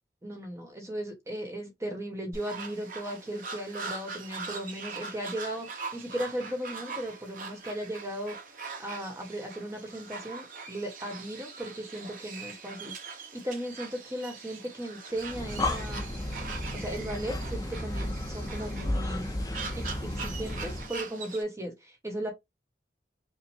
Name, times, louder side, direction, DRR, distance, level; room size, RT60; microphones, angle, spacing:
voice 1, 0.2-8.4 8.8-16.2 16.7-19.3 19.8-22.3, right 1 dB, 15° right, 1.0 m, -37 dB
sound 1, 2.3-21.4, right 4 dB, 50° right, 0.9 m, -42 dB
Breathing, 15.2-21.0, left 1 dB, 20° left, 0.5 m, -33 dB
5.2 x 2.0 x 3.2 m
head